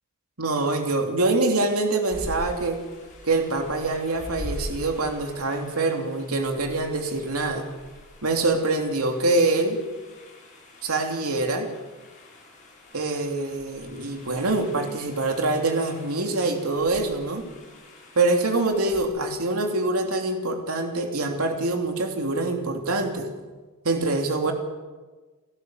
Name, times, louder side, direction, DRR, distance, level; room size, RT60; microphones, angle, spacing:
voice 1, 0.4-2.8 3.2-7.6 8.2-9.8 10.8-11.7 12.9-17.4 18.1-23.3 23.8-24.5, right 2 dB, 75° right, 3 dB, 3.0 m, -25 dB
sound 1, 2.1-19.0, equal, 35° left, 7.8 m, -43 dB
29.5 x 12.5 x 7.9 m, 1.3 s
head